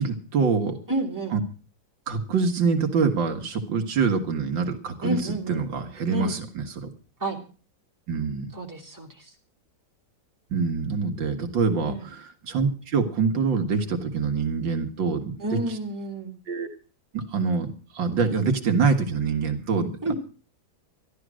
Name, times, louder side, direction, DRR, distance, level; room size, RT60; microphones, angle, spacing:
voice 1, 0.0-0.8 1.3-1.4 2.1-6.9 8.1-8.5 10.5-15.8 16.5-16.7 17.1-20.1, right 5 dB, 90° right, 5 dB, 2.5 m, -25 dB
voice 2, 0.9-1.3 5.0-5.7 6.1-6.4 7.2-7.4 8.5-9.1 11.8-12.0 15.4-16.3 20.0-20.1, right 1 dB, 10° right, 0 dB, 2.9 m, -29 dB
14.0 x 12.5 x 6.3 m, 0.36 s
omnidirectional pair, 2.0 m